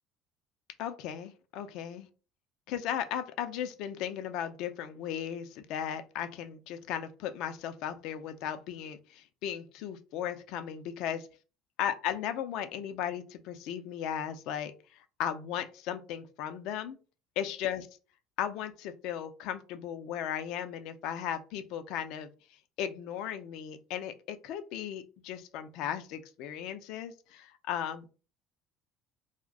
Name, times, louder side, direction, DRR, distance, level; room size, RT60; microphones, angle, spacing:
voice 1, 0.8-2.1 2.7-11.3 11.8-14.7 15.2-17.0 17.4-17.9 18.4-22.3 22.8-28.2, left 9 dB, 60° left, 0.4 m, -36 dB
2.5 x 2.1 x 3.7 m
figure-of-eight pair, 60°, 0 cm